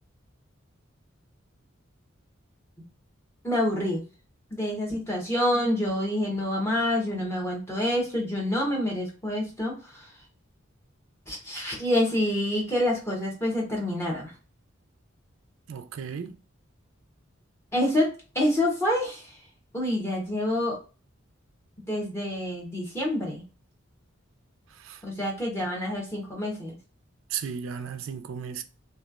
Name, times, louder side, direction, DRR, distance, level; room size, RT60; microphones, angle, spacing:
voice 1, 3.4-4.0 4.5-10.1 11.3-14.3 17.7-19.4 19.7-20.8 21.9-23.4 25.0-26.8, left 1 dB, 15° left, 0.9 m, -27 dB
voice 2, 15.7-16.3 24.8-25.0 27.3-28.6, right 7 dB, 70° right, 0.3 m, -35 dB
3.0 x 2.3 x 2.3 m
head